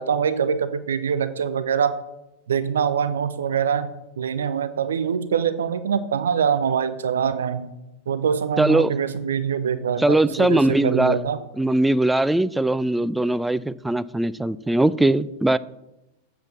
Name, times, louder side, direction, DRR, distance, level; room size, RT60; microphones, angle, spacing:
voice 1, 0.0-1.9 2.5-7.7 8.1-11.4, right 7 dB, 65° right, 0.5 m, -24 dB
voice 2, 8.6-8.9 10.0-11.2 11.6-15.6, right 1 dB, 5° right, 0.3 m, -20 dB
8.0 x 5.3 x 7.0 m
figure-of-eight pair, 90°, 0 cm